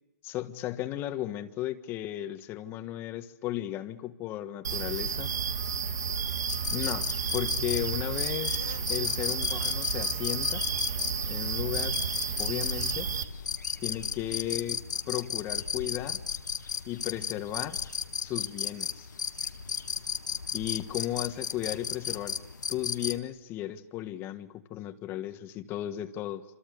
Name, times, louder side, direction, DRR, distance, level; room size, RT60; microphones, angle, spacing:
voice 1, 0.2-5.3 6.7-10.6 11.3-12.0 12.4-13.1 13.8-16.2 16.9-17.8 18.2-19.1 20.5-22.4 22.7-26.4, left 13 dB, 25° left, 1.5 m, -35 dB
sound 1, 4.6-13.2, right 6 dB, 75° right, 2.0 m, -32 dB
sound 2, 6.5-23.2, left 6 dB, 85° left, 1.5 m, -34 dB
27.5 x 27.5 x 6.9 m
hypercardioid pair, 145°, 10 cm